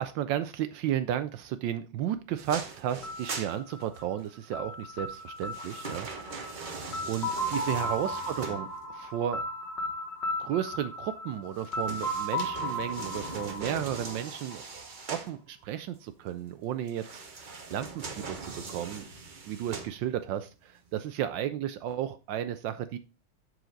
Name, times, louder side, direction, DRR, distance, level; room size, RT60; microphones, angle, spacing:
voice 1, 0.0-6.4 7.1-9.4 10.4-14.6 15.1-19.0 19.5-23.0, right 10 dB, 75° right, 12 dB, 1.1 m, -33 dB
sound 1, 2.4-4.3 5.1-9.1 11.5-15.3 16.9-20.4 20.9-21.0, right 4 dB, 45° right, 0.6 m, -41 dB
sound 2, 3.0-14.8, left 1 dB, 35° left, 1.5 m, -36 dB
7.7 x 6.4 x 3.8 m, 0.29 s
omnidirectional pair, 2.4 m